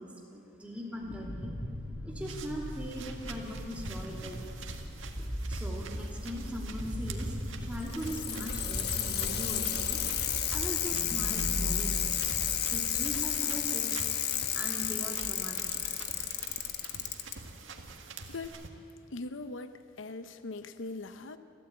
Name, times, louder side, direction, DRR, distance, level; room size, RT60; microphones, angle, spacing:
voice 1, 0.0-1.5 2.0-4.6 5.5-10.0 10.5-12.2 12.7-14.0 14.5-16.0, equal, 5° right, -2 dB, 3.0 m, -40 dB
sound 1, 1.0-13.4, equal, 20° left, 2.7 m, -39 dB
sound 2, 2.2-18.7, right 3 dB, 80° right, 1.8 m, -46 dB
Bicycle, 7.7-17.3 18.4-18.5, left 10 dB, 55° left, 1.5 m, -32 dB
voice 2, 18.3-18.6 19.1-21.4, left 3 dB, 80° left, 10 dB, 0.8 m, -41 dB
29.5 x 13.0 x 8.8 m, 2.6 s
head